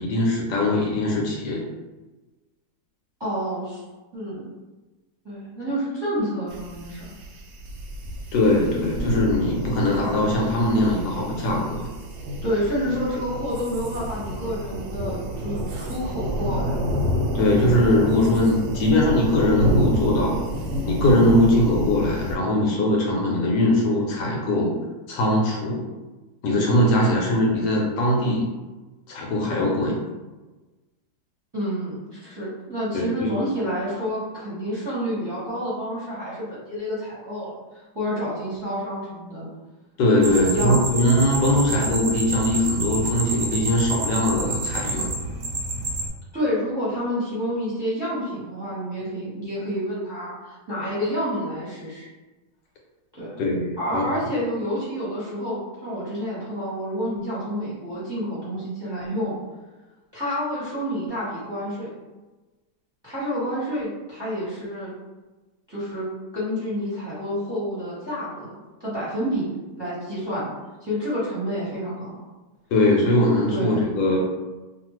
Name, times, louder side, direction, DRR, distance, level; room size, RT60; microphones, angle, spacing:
voice 1, 0.0-1.6 8.3-11.9 17.3-20.4 20.8-24.7 25.1-25.8 26.4-28.5 29.1-30.0 32.9-33.3 40.0-45.1 53.4-54.1 72.7-74.2, left 1 dB, 75° left, -1 dB, 1.2 m, -21 dB
voice 2, 3.2-3.8 4.1-4.5 5.2-7.2 12.4-16.8 18.3-18.6 31.5-39.5 40.2-41.0 41.5-41.6 46.3-52.1 53.1-53.4 53.8-59.4 60.1-61.9 63.0-64.9 65.7-66.1 66.3-68.5 68.8-69.5 69.8-70.5 70.8-72.2 73.5-73.9, equal, 15° right, -9 dB, 1.0 m, -29 dB
sound 1, 6.5-22.4, equal, 85° right, 1.2 m, -28 dB
sound 2, 40.2-46.1, right 2 dB, 70° right, 0.9 m, -28 dB
2.7 x 2.5 x 3.0 m, 1.2 s
omnidirectional pair, 1.8 m